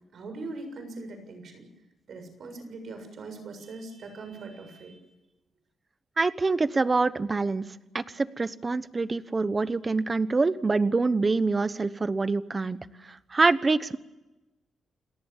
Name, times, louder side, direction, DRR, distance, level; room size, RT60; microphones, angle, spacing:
voice 1, 0.1-1.6 2.1-5.0, right 3 dB, 60° right, 8 dB, 7.1 m, -41 dB
voice 2, 6.2-7.6 7.9-12.8 13.1-14.0, right 3 dB, 25° right, 14 dB, 1.0 m, -25 dB
29.5 x 20.0 x 7.3 m, 1.0 s
cardioid pair, 130°, 0 cm